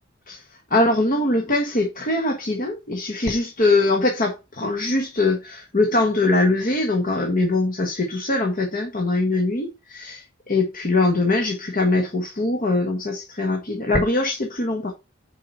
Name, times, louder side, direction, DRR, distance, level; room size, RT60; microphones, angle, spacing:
voice 1, 0.7-14.9, left 2 dB, 45° left, 1.4 m, -22 dB
6.9 x 4.9 x 5.6 m
head